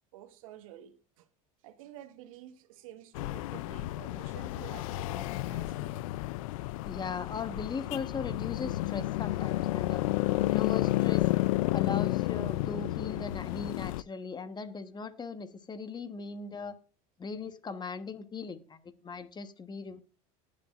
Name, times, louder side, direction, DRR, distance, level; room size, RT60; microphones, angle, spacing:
voice 1, 0.1-1.3 1.6-6.2 10.4-10.5, right 12 dB, 85° right, 1.3 m, -50 dB
sound 1, 3.2-14.0, left 17 dB, 85° left, 0.4 m, -31 dB
voice 2, 6.8-10.0 10.5-11.3 11.7-16.8 17.2-20.0, left 5 dB, 25° left, 1.2 m, -39 dB
19.0 x 7.4 x 2.5 m
supercardioid pair, 100°, 17 cm